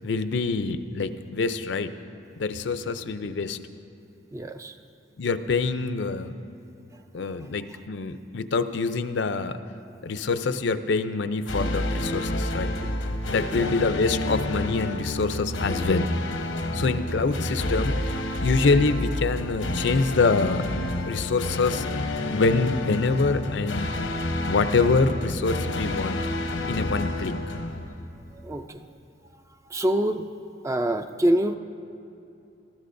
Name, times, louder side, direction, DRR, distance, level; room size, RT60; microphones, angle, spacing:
voice 1, 0.0-1.9 2.4-3.6 5.2-6.3 7.1-9.6 10.0-12.7 13.3-16.1 16.7-18.0 18.4-20.6 21.0-21.8 22.3-23.9 24.4-26.2 26.7-27.3, left 4 dB, 70° left, 10 dB, 0.5 m, -25 dB
voice 2, 4.3-4.7 13.5-13.7 28.4-28.9 29.7-30.3 30.6-31.6, right 1 dB, 15° right, 8 dB, 0.3 m, -25 dB
sound 1, 11.5-28.5, left 1 dB, 90° left, 0.9 m, -29 dB
19.5 x 14.0 x 2.6 m, 2.7 s
head